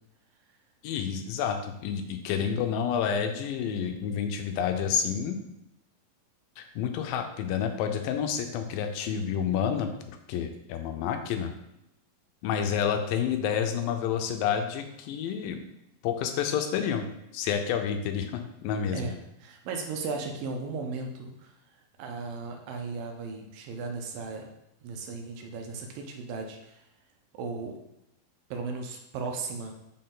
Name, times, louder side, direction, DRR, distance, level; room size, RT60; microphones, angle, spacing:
voice 1, 0.8-5.4 6.6-11.5 12.4-15.6 16.0-17.1 17.3-19.1, left 8 dB, 85° left, 6 dB, 2.4 m, -29 dB
voice 2, 19.4-21.5 22.0-24.5 24.8-26.8 27.3-27.8 28.5-29.7, right 4 dB, 80° right, 3 dB, 2.5 m, -36 dB
6.0 x 4.3 x 3.8 m, 0.84 s
omnidirectional pair, 4.0 m